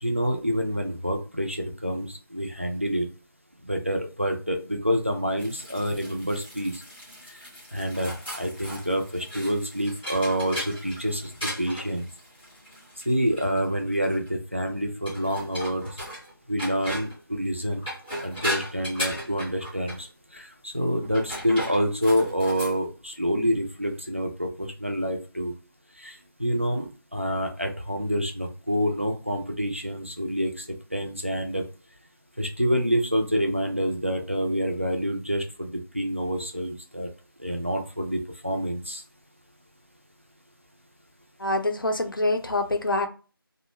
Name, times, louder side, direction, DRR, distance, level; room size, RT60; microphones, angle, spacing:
voice 1, 0.0-3.1 3.6-6.8 7.7-12.1 13.1-15.9 16.5-17.8 18.2-25.5 26.0-31.6 32.4-37.1 37.4-39.0, equal, 35° right, 0.3 m, -27 dB
sound 1, 5.4-14.3 15.0-16.3 16.6-17.2 17.7-20.0 21.0-22.7, equal, 5° left, 0.7 m, -37 dB
voice 2, 41.4-43.1, left 2 dB, 60° left, 0.5 m, -25 dB
2.4 x 2.0 x 2.9 m
figure-of-eight pair, 180°, 12 cm